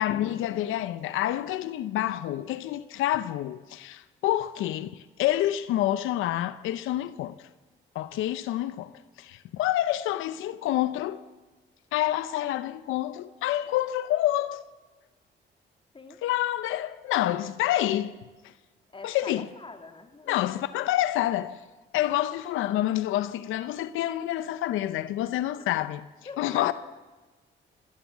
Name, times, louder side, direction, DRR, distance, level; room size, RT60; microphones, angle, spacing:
voice 1, 0.0-7.3 7.9-8.9 9.2-11.2 11.9-14.6 16.2-18.1 19.0-19.5 20.3-21.6 21.9-26.1 26.4-26.7, left 13 dB, 90° left, 0.7 m, -28 dB
voice 2, 18.9-20.6 25.6-25.7 26.3-26.7, left 3 dB, 25° left, 2.8 m, -44 dB
25.0 x 17.0 x 7.4 m
cardioid pair, 90°, 20 cm